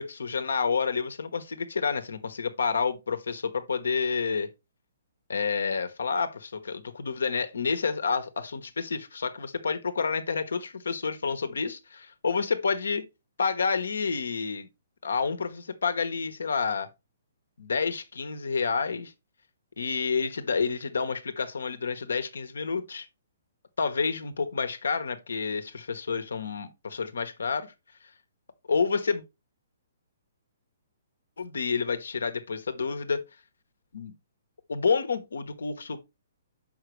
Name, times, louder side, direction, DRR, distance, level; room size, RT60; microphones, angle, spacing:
voice 1, 0.0-4.5 5.3-13.1 13.4-14.7 15.0-16.9 17.6-19.1 19.8-23.1 23.8-27.7 28.7-29.2 31.4-33.2 33.9-34.1 34.7-36.0, left 5 dB, 75° left, 1.1 m, -29 dB
6.8 x 5.5 x 3.2 m
figure-of-eight pair, 125°, 0 cm